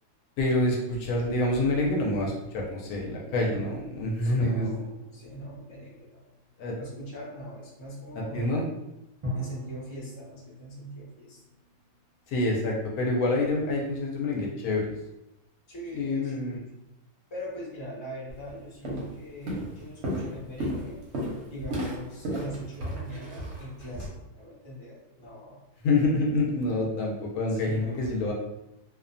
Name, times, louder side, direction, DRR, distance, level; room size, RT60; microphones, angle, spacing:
voice 1, 0.4-4.7 6.6-6.7 8.2-8.6 12.3-14.9 15.9-16.6 25.8-28.3, left 2 dB, 75° left, -1 dB, 1.0 m, -27 dB
voice 2, 3.2-6.3 6.8-8.6 9.3-11.4 15.7-16.7 17.3-21.0 21.5-25.6 27.3-28.1, equal, 30° left, -6 dB, 0.6 m, -42 dB
sound 1, 4.4-6.8 9.2-12.3, left 1 dB, 40° right, 0.4 m, -40 dB
Walk footsteps, 18.3-18.5 18.8-19.2 19.5-24.1, equal, 55° right, 0.8 m, -33 dB
2.6 x 2.1 x 2.5 m, 0.91 s
omnidirectional pair, 1.6 m